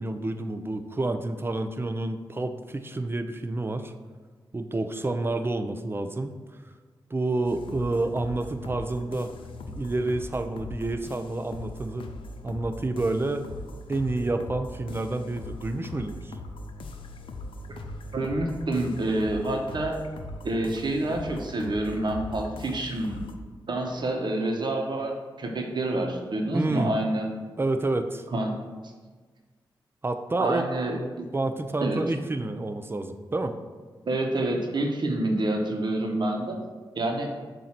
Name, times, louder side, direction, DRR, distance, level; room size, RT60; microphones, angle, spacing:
voice 1, 0.0-3.9 4.5-6.4 7.1-9.3 9.7-12.1 12.4-13.5 13.9-16.3 26.5-26.9 27.6-28.2 30.0-30.7 31.3-33.6, right 2 dB, 25° right, 8 dB, 0.5 m, -29 dB
sound 1, 7.4-23.3, left 1 dB, 80° left, 0.5 m, -40 dB
voice 2, 18.1-19.9 20.4-23.2 23.7-27.3 28.3-28.6 28.8-28.9 30.4-31.0 31.8-32.0 34.0-36.6 36.9-37.3, right 1 dB, 60° right, 1 dB, 1.0 m, -28 dB
7.3 x 2.7 x 5.9 m, 1.4 s
cardioid pair, 60°, 9 cm